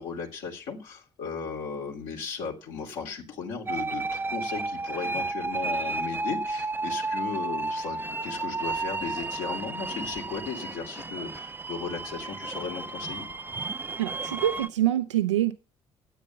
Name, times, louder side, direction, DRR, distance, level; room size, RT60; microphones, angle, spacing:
voice 1, 0.0-13.3, left 5 dB, 65° left, -2 dB, 2.9 m, -36 dB
sound 1, 3.7-14.7, right 3 dB, 15° right, 0.6 m, -32 dB
voice 2, 14.0-15.5, right 13 dB, 80° right, 10 dB, 0.6 m, -25 dB
13.0 x 9.0 x 6.9 m, 0.34 s
figure-of-eight pair, 45°, 15 cm